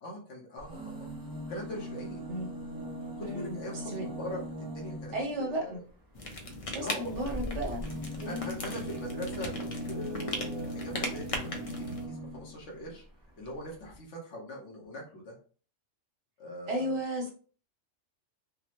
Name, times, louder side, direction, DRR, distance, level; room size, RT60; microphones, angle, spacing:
voice 1, 0.0-1.1 1.5-2.2 3.2-4.4 4.7-5.8 6.7-7.3 8.2-13.0 13.4-15.4 16.4-17.0, left 1 dB, 70° left, -3 dB, 1.2 m, -41 dB
sound 1, 0.6-5.4 7.1-12.6 13.5-13.6 13.8-13.9, right 1 dB, 35° right, 0.3 m, -39 dB
voice 2, 3.2-4.4 5.1-5.8 6.7-7.8 8.2-8.5 16.7-17.3, right 1 dB, 70° right, 0 dB, 1.3 m, -34 dB
sound 2, 6.1-12.1, left 1 dB, 50° left, 0.4 m, -39 dB
3.5 x 2.0 x 2.9 m, 0.40 s
omnidirectional pair, 1.3 m